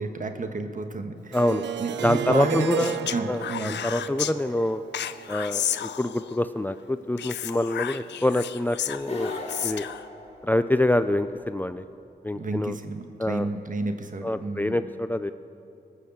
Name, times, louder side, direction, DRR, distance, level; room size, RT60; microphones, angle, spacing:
voice 1, 0.0-3.7 12.3-14.8, right 3 dB, 50° right, 7 dB, 1.3 m, -31 dB
voice 2, 1.3-1.6 2.0-3.0 3.3-4.8 5.3-9.8 10.4-11.8 12.2-12.8 13.2-13.5 14.2-15.3, left 1 dB, 10° left, 11 dB, 0.4 m, -26 dB
Harp, 1.3-6.3, right 8 dB, 90° right, 0.5 m, -34 dB
Speech, 2.8-4.3 4.9-6.4 7.2-10.0, left 10 dB, 90° left, 0.4 m, -32 dB
sound 1, 8.9-11.0, left 2 dB, 35° left, 2.9 m, -36 dB
19.5 x 6.6 x 7.9 m, 2.8 s
cardioid pair, 70°, 18 cm